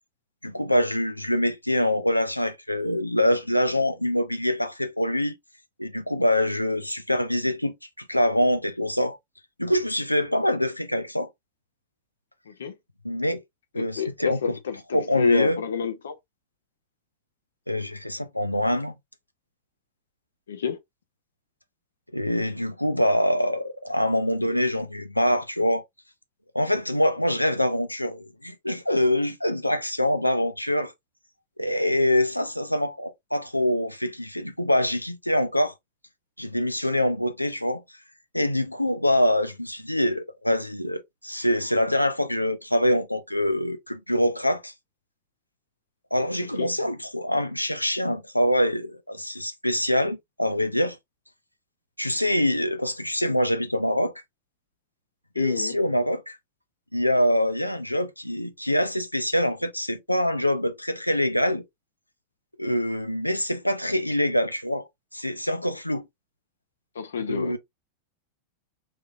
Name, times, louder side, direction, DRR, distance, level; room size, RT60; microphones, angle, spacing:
voice 1, 0.4-5.3 5.8-9.2 9.6-11.3 13.0-13.4 13.7-14.5 14.9-15.6 17.7-18.9 22.1-25.8 26.5-30.9 31.6-35.7 36.4-37.8 38.3-44.7 46.1-51.0 52.0-54.1 55.4-56.4 56.9-61.6 62.6-64.8 65.1-66.1 67.3-67.6, left 1 dB, 90° left, 0.6 m, -25 dB
voice 2, 13.7-16.2 20.5-20.8 46.4-46.7 55.4-55.8 66.9-67.5, left 6 dB, 65° left, 0.9 m, -29 dB
4.7 x 3.7 x 2.5 m
figure-of-eight pair, 90°, 0 cm